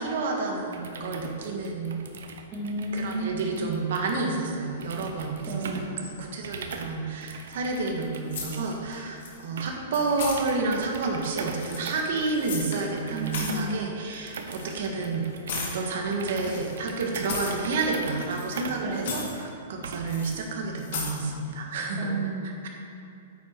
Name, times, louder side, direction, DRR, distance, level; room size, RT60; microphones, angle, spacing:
voice 1, 0.0-2.0 2.9-15.3 15.6-22.1, right 3 dB, 55° right, 1 dB, 1.6 m, -30 dB
sound 1, 0.6-20.2, right 4 dB, 75° right, 1.0 m, -41 dB
voice 2, 2.5-3.5 5.4-6.0 13.1-13.9 18.8-19.2 22.0-22.7, right 2 dB, 20° right, -6 dB, 2.1 m, -32 dB
sound 2, 8.3-8.9 9.2-9.6 9.9-10.4 11.5-12.8 13.1-13.6 14.5-14.7 15.5-15.8 16.4-17.9 18.2-18.7 18.9-19.4 20.1-20.3 20.8-21.2, left 4 dB, 50° left, 1.8 m, -35 dB
9.0 x 8.1 x 4.6 m, 2.6 s
hypercardioid pair, 175°, 0 cm